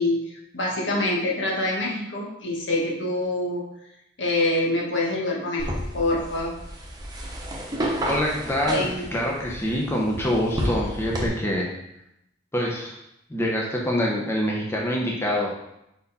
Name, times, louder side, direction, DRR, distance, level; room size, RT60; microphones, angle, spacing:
voice 1, 0.0-3.6 4.2-5.7 5.9-6.5 8.7-9.0, left 2 dB, 75° left, -3 dB, 1.6 m, -25 dB
sound 1, 5.6-11.3, equal, 20° right, 1.0 m, -31 dB
voice 2, 8.0-11.7 12.5-12.9 13.3-15.5, equal, 15° left, -2 dB, 0.8 m, -25 dB
5.1 x 4.7 x 4.2 m, 0.83 s
head